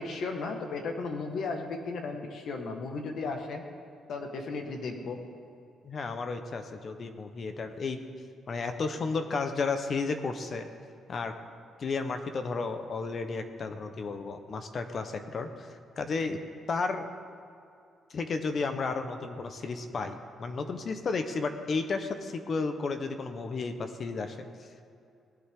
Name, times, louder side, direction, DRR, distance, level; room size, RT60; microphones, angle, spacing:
voice 1, 0.0-3.6 4.1-5.2, left 3 dB, 65° left, 3 dB, 1.8 m, -35 dB
voice 2, 5.8-8.0 8.5-10.7 11.1-11.3 11.8-15.7 16.0-16.4 16.7-17.1 18.1-24.5, left 4 dB, 50° left, 7 dB, 1.1 m, -33 dB
19.5 x 9.9 x 3.9 m, 2.5 s
cardioid pair, 90°, 0 cm